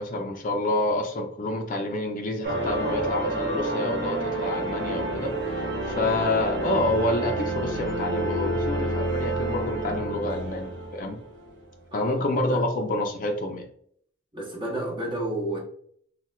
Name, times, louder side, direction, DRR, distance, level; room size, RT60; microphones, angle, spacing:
voice 1, 0.0-5.3 5.8-11.2 11.9-13.7, left 1 dB, 45° left, 0.4 m, -28 dB
sound 1, 2.4-11.6, right 1 dB, 70° right, 0.8 m, -29 dB
voice 2, 11.9-12.7 14.3-15.6, right 1 dB, 25° right, 0.7 m, -31 dB
4.1 x 2.1 x 2.2 m
head